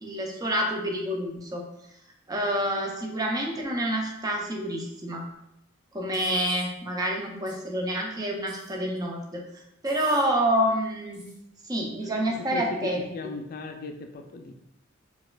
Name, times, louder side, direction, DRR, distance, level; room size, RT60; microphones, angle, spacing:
voice 1, 0.0-1.6 2.3-5.2 5.9-9.4 9.8-11.3 11.7-13.0, equal, 20° right, 0 dB, 0.4 m, -28 dB
sound 1, 6.1-6.7 7.5-7.6 8.5-9.0 9.8-10.3 11.1-11.4, right 1 dB, 40° right, 1.1 m, -48 dB
voice 2, 12.2-14.6, left 2 dB, 45° left, 4 dB, 0.3 m, -37 dB
4.0 x 2.4 x 2.2 m, 0.82 s
head